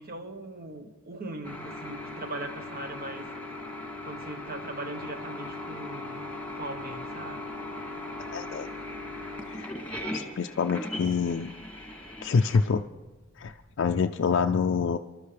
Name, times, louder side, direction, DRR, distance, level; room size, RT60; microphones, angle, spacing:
voice 1, 0.0-3.3 4.0-7.5, right 2 dB, 45° right, 7 dB, 1.1 m, -40 dB
sound 1, 1.4-13.5, left 1 dB, 5° left, 2.4 m, -38 dB
voice 2, 8.3-8.7 9.5-9.8 10.1-11.5 12.2-12.8 13.4-15.0, left 5 dB, 60° left, 5 dB, 0.4 m, -26 dB
25.5 x 12.5 x 3.3 m, 1.2 s
head